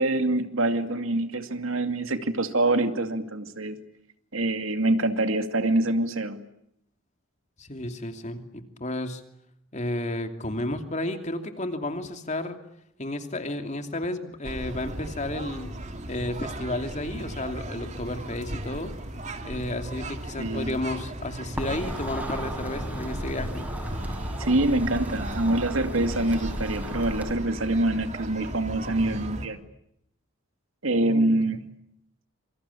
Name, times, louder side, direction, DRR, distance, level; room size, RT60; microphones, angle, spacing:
voice 1, 0.0-3.8 4.3-6.4 20.4-20.8 24.4-29.6 30.8-31.6, right 2 dB, 75° right, 8 dB, 2.4 m, -25 dB
voice 2, 7.6-9.2 9.7-12.6 13.0-15.7 16.1-18.9 19.4-23.7 31.0-31.2, left 1 dB, 35° left, 6 dB, 2.8 m, -32 dB
sound 1, 14.4-29.5, right 1 dB, 35° right, 2.6 m, -36 dB
sound 2, 21.6-27.3, equal, 10° right, 6.3 m, -35 dB
27.0 x 25.5 x 8.5 m, 0.76 s
head